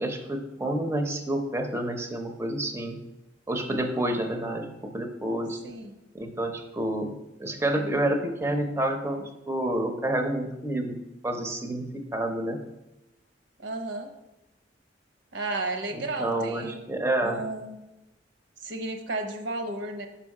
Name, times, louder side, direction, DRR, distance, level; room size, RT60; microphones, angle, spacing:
voice 1, 0.0-3.0 3.5-5.6 6.1-11.0 11.2-12.6 15.9-17.5, right 1 dB, 15° right, 5 dB, 0.6 m, -29 dB
voice 2, 13.6-14.1 15.3-16.8 17.2-17.8 18.6-20.1, right 2 dB, 80° right, 6 dB, 0.9 m, -33 dB
5.9 x 5.3 x 4.8 m, 0.95 s
head